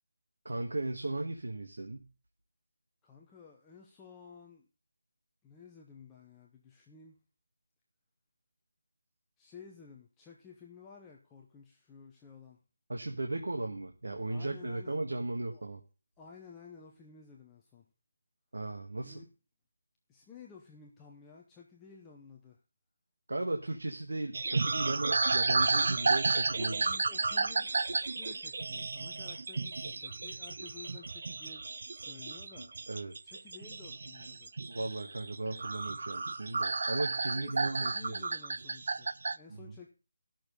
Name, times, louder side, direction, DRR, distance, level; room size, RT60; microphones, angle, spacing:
voice 1, 0.4-2.1 12.9-15.8 18.5-19.2 23.3-26.7 32.9-33.1 34.7-38.2 39.5-39.7, right 2 dB, 85° right, 3 dB, 1.5 m, -36 dB
voice 2, 3.0-4.7 5.4-7.2 9.4-12.6 14.3-15.1 15.5-15.6 16.2-17.9 19.0-19.3 20.1-22.6 26.5-31.6 31.9-32.7 33.2-34.5 37.3-39.9, left 5 dB, 5° left, -2 dB, 0.7 m, -53 dB
sound 1, 24.3-39.4, right 3 dB, 50° right, 0.5 m, -32 dB
14.0 x 6.3 x 5.2 m, 0.33 s
figure-of-eight pair, 175°, 0 cm